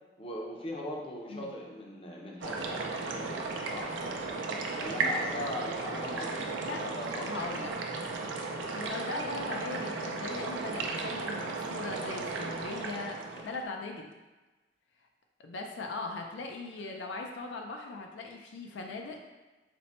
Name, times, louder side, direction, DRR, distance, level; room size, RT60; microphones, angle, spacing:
voice 1, 0.2-4.4 4.8-7.3 8.2-8.4, left 1 dB, 30° left, -2 dB, 0.5 m, -40 dB
sound 1, 2.4-13.6, right 3 dB, 90° right, 0.5 m, -35 dB
voice 2, 7.3-7.9 8.7-14.1 15.4-19.2, left 3 dB, 80° left, 2 dB, 0.4 m, -39 dB
4.2 x 2.1 x 4.1 m, 1.2 s
head